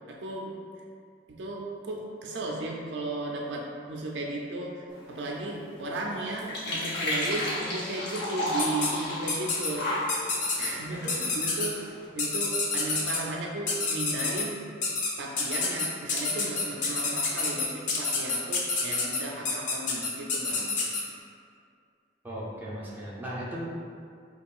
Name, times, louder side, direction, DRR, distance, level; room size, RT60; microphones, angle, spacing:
voice 1, 0.1-0.5 1.3-9.9 10.6-11.8 12.2-14.6 15.2-20.8, right 2 dB, 75° right, -1 dB, 0.4 m, -35 dB
sound 1, 4.9-12.1, left 1 dB, 65° left, 0.9 m, -34 dB
sound 2, 8.6-8.9 9.3-9.7 10.1-10.7 11.1-11.7 12.2-13.2 13.7-14.4 14.8-15.1 15.4-21.0, left 4 dB, 45° left, 0.5 m, -28 dB
voice 2, 22.2-23.6, equal, 10° right, -6 dB, 0.6 m, -37 dB
5.3 x 2.3 x 2.4 m, 2.3 s
head